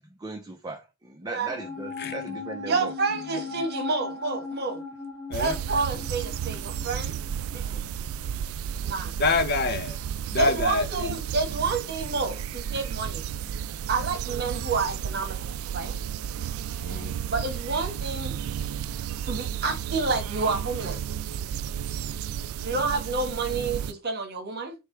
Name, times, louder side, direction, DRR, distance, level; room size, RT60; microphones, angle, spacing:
voice 1, 0.0-2.9 3.3-3.4, right 2 dB, 20° right, 0.6 m, -38 dB
voice 2, 1.2-1.6 2.7-4.8 5.3-7.1 7.5-7.8 8.8-9.1 10.4-13.2 13.9-16.0 17.3-18.4 19.2-21.0 22.6-24.7, right 4 dB, 50° right, 1.3 m, -29 dB
sound 1, 1.5-8.0 8.3-8.4, left 3 dB, 35° left, 2.4 m, -38 dB
sound 2, 5.3-23.9, right 9 dB, 85° right, 0.3 m, -33 dB
voice 3, 9.2-10.0 10.3-11.2 16.8-17.1, left 3 dB, 50° left, 0.7 m, -26 dB
3.3 x 3.2 x 4.5 m
head